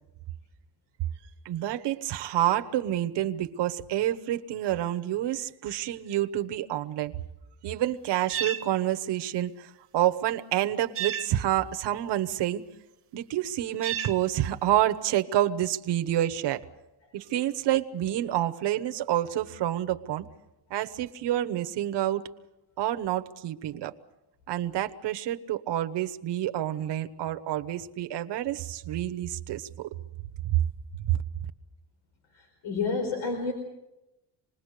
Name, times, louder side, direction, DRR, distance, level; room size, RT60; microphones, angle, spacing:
voice 1, 1.4-7.2 7.6-12.6 13.1-16.6 17.1-20.3 20.7-22.2 22.8-23.9 24.5-29.9 30.4-30.6 31.1-31.2, right 13 dB, 65° right, 8 dB, 1.2 m, -28 dB
sound 1, 8.3-8.6 10.9-11.3 13.8-14.2, right 8 dB, 30° right, 1.1 m, -31 dB
voice 2, 32.3-33.5, left 4 dB, 85° left, 2 dB, 4.9 m, -30 dB
27.0 x 20.5 x 6.7 m, 0.94 s
cardioid pair, 180°, 45 cm